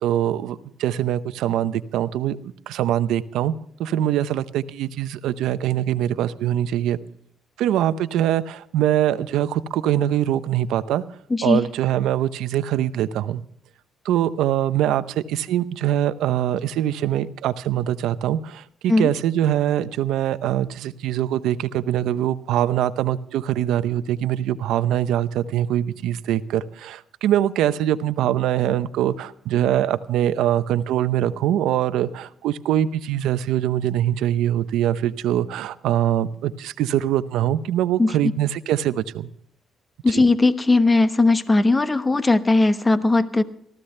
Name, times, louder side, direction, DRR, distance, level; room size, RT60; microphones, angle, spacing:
voice 1, 0.0-3.5 3.8-7.0 7.6-11.0 11.4-13.4 14.0-39.3 40.1-40.2, right 11 dB, 85° right, 13 dB, 0.7 m, -23 dB
voice 2, 11.3-11.6 18.9-19.1 38.0-38.1 40.0-43.4, left 2 dB, 20° left, 11 dB, 1.1 m, -18 dB
19.0 x 14.5 x 3.3 m, 0.66 s
cardioid pair, 90°, 0 cm